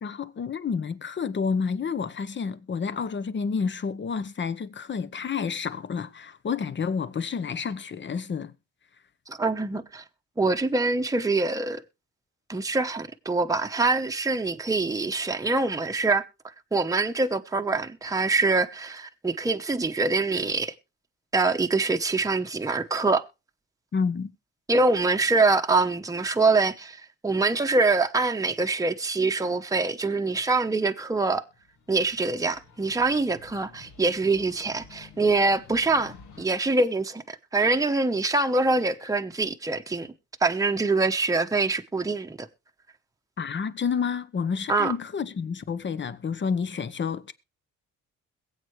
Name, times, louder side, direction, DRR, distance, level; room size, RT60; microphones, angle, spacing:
voice 1, 0.0-8.5 23.9-24.3 43.4-47.3, left 6 dB, 40° left, 1.0 m, -29 dB
voice 2, 9.3-10.0 10.4-11.8 12.5-16.2 16.7-20.7 21.3-23.2 24.7-31.4 31.9-40.1 40.4-42.5 44.7-44.9, right 3 dB, 10° right, 1.0 m, -24 dB
sound 1, 31.5-36.4, left 5 dB, 75° left, 2.3 m, -51 dB
22.0 x 8.2 x 3.2 m
cardioid pair, 90°, 30 cm